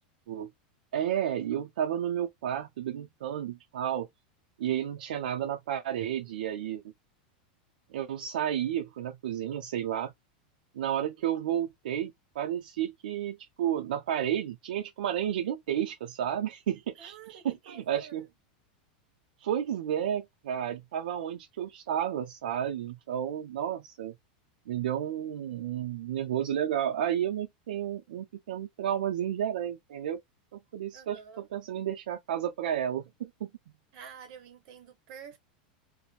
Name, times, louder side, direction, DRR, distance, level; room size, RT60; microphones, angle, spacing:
voice 1, 0.9-4.1 4.6-6.8 7.9-10.1 10.8-18.3 19.4-24.1 24.7-30.2 30.5-31.2 31.5-33.5, right 10 dB, 90° right, 0.5 m, -32 dB
voice 2, 17.0-18.3 30.9-31.5 33.9-35.4, right 7 dB, 50° right, 0.8 m, -49 dB
2.5 x 2.1 x 3.0 m
supercardioid pair, 150°, 5 cm